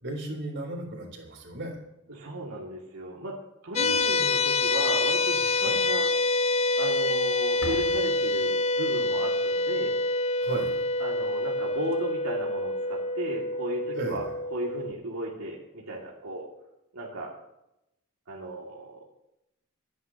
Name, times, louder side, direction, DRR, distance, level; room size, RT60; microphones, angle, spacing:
voice 1, 0.0-1.8 3.8-4.1 5.6-5.8 10.4-10.8 14.0-14.2, right 2 dB, 55° right, 1 dB, 4.0 m, -35 dB
voice 2, 2.1-3.4 3.6-6.4 6.8-9.9 11.0-14.2 14.5-16.5 16.9-17.3 18.3-19.0, right 1 dB, 80° right, -4 dB, 2.5 m, -35 dB
sound 1, 3.8-14.9, left 2 dB, 30° left, 0.5 m, -26 dB
Slam, 4.4-5.0 5.3-5.5 5.9-6.0 6.8-7.2 7.4-8.7 11.4-11.5 11.7-11.9 13.5-13.6, equal, 90° left, 3.7 m, -43 dB
26.5 x 10.5 x 3.0 m, 0.86 s
head